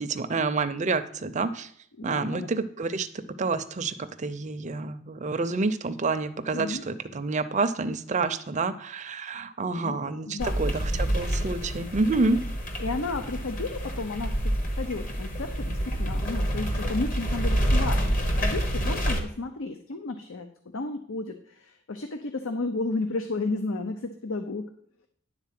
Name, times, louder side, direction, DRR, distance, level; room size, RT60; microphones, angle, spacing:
voice 1, 0.0-1.7 2.0-12.4, right 3 dB, 35° right, 11 dB, 0.5 m, -28 dB
voice 2, 2.0-2.5 6.5-6.8 9.8-10.6 12.8-20.5 20.7-24.7, left 3 dB, 75° left, 7 dB, 0.7 m, -33 dB
sound 1, 10.4-19.2, equal, 40° left, 1.2 m, -28 dB
10.5 x 4.0 x 7.5 m, 0.63 s
head